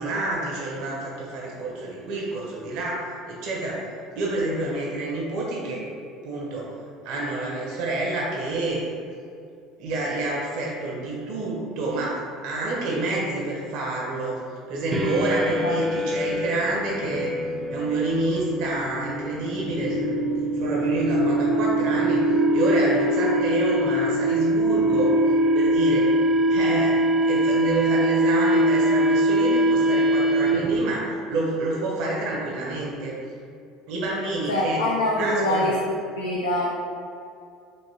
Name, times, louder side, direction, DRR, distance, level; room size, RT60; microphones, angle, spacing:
voice 1, 0.0-3.9 4.1-5.8 6.2-6.7 7.0-8.8 9.8-14.4 14.7-17.3 17.7-20.3 20.6-25.1 25.5-26.1 26.5-33.1 33.9-34.8 35.1-35.7, right 2 dB, 65° right, -4 dB, 0.9 m, -28 dB
sound 1, 14.9-30.8, right 1 dB, 25° right, 0.6 m, -22 dB
voice 2, 34.5-35.8 36.2-36.7, left 1 dB, 90° left, -5 dB, 0.5 m, -24 dB
4.4 x 2.9 x 2.8 m, 2.4 s
hypercardioid pair, 70°, 0 cm